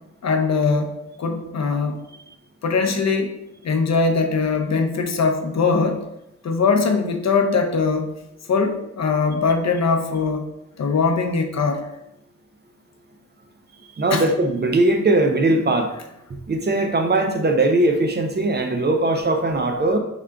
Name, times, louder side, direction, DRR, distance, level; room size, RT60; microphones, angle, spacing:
voice 1, 0.2-2.0 2.6-3.3 3.6-6.0 6.4-8.1 8.5-10.5 10.8-11.9 14.1-14.2, left 4 dB, 60° left, 5 dB, 0.5 m, -21 dB
voice 2, 14.0-15.9 16.5-20.0, right 2 dB, 35° right, 5 dB, 0.4 m, -20 dB
4.6 x 3.7 x 2.2 m, 0.83 s
wide cardioid pair, 120°, 30 cm